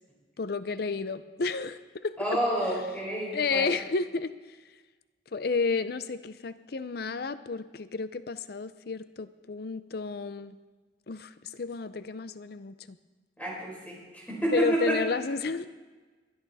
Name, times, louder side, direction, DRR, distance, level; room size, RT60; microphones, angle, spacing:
voice 1, 0.4-2.1 3.3-4.3 5.3-10.6 11.1-13.0 14.5-15.7, left 4 dB, 55° left, 13 dB, 0.5 m, -31 dB
voice 2, 2.2-3.7 13.4-15.0, right 1 dB, 10° left, -3 dB, 4.2 m, -29 dB
22.0 x 11.5 x 4.1 m, 1.3 s
head